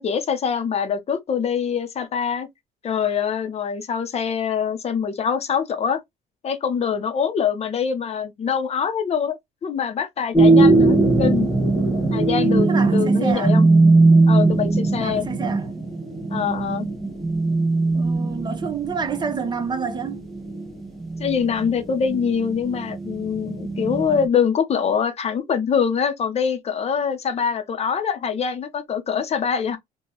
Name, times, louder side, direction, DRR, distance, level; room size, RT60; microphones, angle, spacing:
voice 1, 0.0-2.5 2.8-6.0 6.4-9.4 9.6-11.5 12.1-13.7 14.3-15.3 16.3-16.9 21.2-29.8, left 7 dB, 40° left, 0.7 m, -24 dB
sound 1, 10.3-24.3, right 3 dB, ahead, 0.9 m, -19 dB
voice 2, 12.7-13.6 15.0-15.7 17.9-20.3, right 5 dB, 25° right, 0.8 m, -28 dB
2.9 x 2.2 x 2.9 m
cardioid pair, 110°, 17 cm